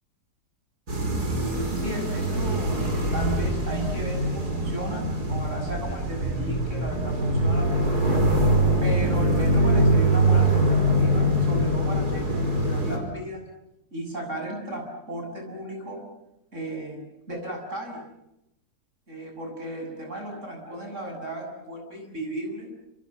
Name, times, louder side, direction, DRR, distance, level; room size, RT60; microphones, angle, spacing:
sound 1, 0.9-13.0, right 1 dB, 70° right, 5.7 m, -23 dB
voice 1, 1.7-8.3 8.8-13.4 13.9-16.0 16.5-17.0 17.3-18.0 19.1-22.7, right 1 dB, 45° right, 3 dB, 8.2 m, -35 dB
28.0 x 27.5 x 7.3 m, 0.86 s
omnidirectional pair, 1.7 m